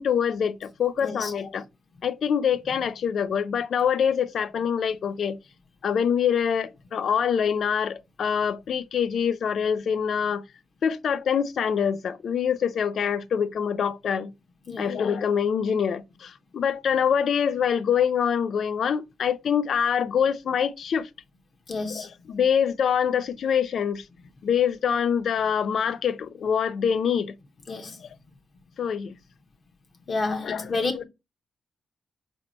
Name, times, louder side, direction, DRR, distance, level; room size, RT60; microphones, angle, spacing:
voice 1, 0.0-1.6 2.0-5.4 5.8-10.4 10.8-14.3 14.8-21.1 21.9-24.1 24.4-27.4 28.0-28.1 28.8-29.2 30.4-31.0, left 7 dB, 70° left, 0.3 m, -25 dB
voice 2, 21.7-22.1 27.7-28.0 30.1-30.9, left 3 dB, 55° left, 0.9 m, -29 dB
4.1 x 2.8 x 4.2 m
cardioid pair, 70°, 0 cm